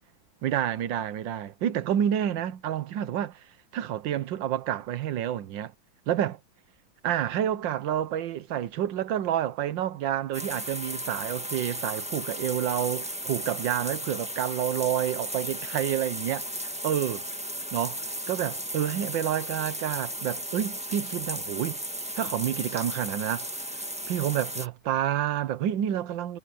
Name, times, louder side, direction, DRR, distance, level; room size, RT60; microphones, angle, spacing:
voice 1, 0.4-3.4 3.7-5.7 6.1-6.4 7.0-16.5 16.8-17.3 17.7-21.8 22.1-23.5 24.1-26.4, right 10 dB, 70° right, 1.6 m, -29 dB
sound 1, 10.3-24.7, equal, 5° right, 1.4 m, -35 dB
omnidirectional pair, 2.2 m